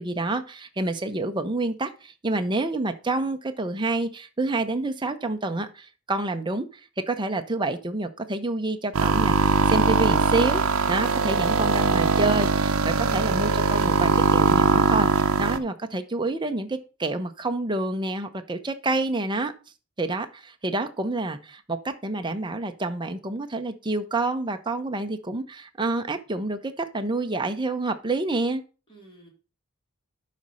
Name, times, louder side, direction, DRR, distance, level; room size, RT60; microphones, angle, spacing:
voice 1, 0.0-6.7 7.0-15.1 15.4-19.5 20.0-28.6, right 2 dB, 20° right, 7 dB, 0.9 m, -28 dB
sound 1, 9.0-15.6, right 4 dB, 85° right, 0.8 m, -21 dB
voice 2, 28.9-29.3, right 2 dB, 25° left, -2 dB, 3.7 m, -50 dB
11.5 x 4.3 x 5.6 m, 0.34 s
head